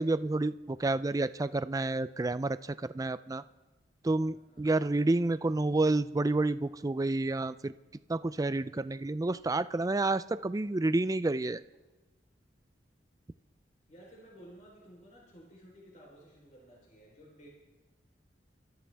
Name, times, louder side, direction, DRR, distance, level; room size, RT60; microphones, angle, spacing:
voice 1, 0.0-3.4 4.0-7.7 8.1-11.6, right 2 dB, 20° right, 14 dB, 0.4 m, -29 dB
voice 2, 4.2-4.7 13.9-17.5, equal, 45° left, -2 dB, 3.9 m, -55 dB
28.5 x 13.5 x 3.5 m, 1.2 s
head